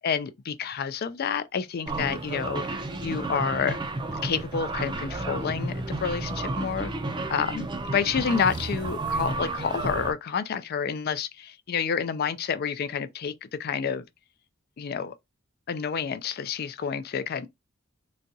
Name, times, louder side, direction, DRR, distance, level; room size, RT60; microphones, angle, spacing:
voice 1, 0.0-3.8 4.2-6.9 7.3-14.0 14.8-15.1 15.7-17.5, left 6 dB, 50° left, 0.4 m, -29 dB
sound 1, 1.9-10.1, right 2 dB, 20° right, 0.4 m, -32 dB
4.0 x 2.3 x 2.6 m
head